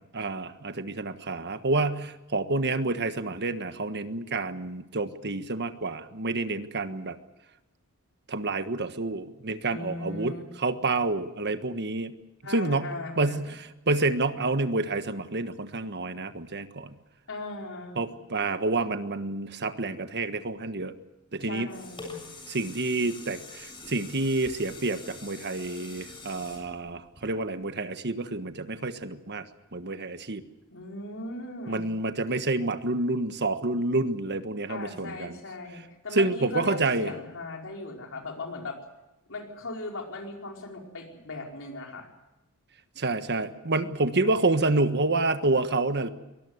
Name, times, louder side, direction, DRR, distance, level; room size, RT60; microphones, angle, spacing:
voice 1, 0.1-7.2 8.3-12.1 12.5-17.0 18.0-20.9 21.3-21.7 22.5-29.5 29.7-30.4 31.7-35.4 36.1-37.1 43.0-46.1, right 2 dB, 50° right, 10 dB, 1.5 m, -28 dB
voice 2, 9.7-10.4 12.4-13.4 17.3-18.0 21.4-22.2 30.7-31.9 34.7-38.8 39.3-42.1, left 2 dB, 65° left, 1 dB, 5.0 m, -38 dB
sound 1, 21.7-27.7 28.2-28.3, left 3 dB, 25° left, 7.6 m, -45 dB
23.5 x 20.0 x 8.1 m, 0.99 s
head